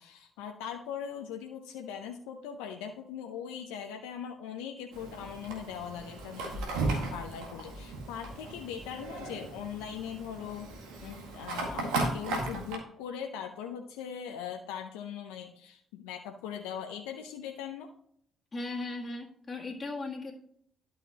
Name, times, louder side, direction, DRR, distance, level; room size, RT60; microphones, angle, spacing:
voice 1, 0.0-10.7 11.0-17.9, left 8 dB, 80° left, 4 dB, 0.6 m, -40 dB
Fire, 4.9-12.8, right 2 dB, 80° right, 1.8 m, -36 dB
voice 2, 18.5-20.3, left 2 dB, 30° left, -2 dB, 1.9 m, -37 dB
11.5 x 5.7 x 2.9 m, 0.66 s
hypercardioid pair, 45°, 0 cm